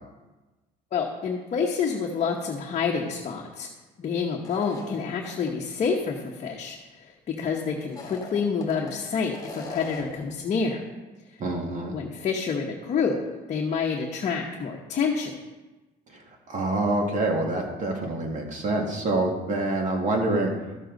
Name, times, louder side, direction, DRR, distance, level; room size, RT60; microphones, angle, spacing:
voice 1, 0.9-3.7 4.0-10.8 11.9-13.2 13.5-15.3, left 5 dB, 40° left, -1 dB, 1.0 m, -28 dB
sound 1, 4.4-5.5 5.9-6.0 7.8-8.9 9.3-10.2, left 3 dB, 20° left, 1.8 m, -40 dB
voice 2, 11.4-11.9 16.1-16.2 16.5-20.5, right 2 dB, 40° right, 1 dB, 2.0 m, -26 dB
13.0 x 6.6 x 3.9 m, 1.2 s
cardioid pair, 125°, 19 cm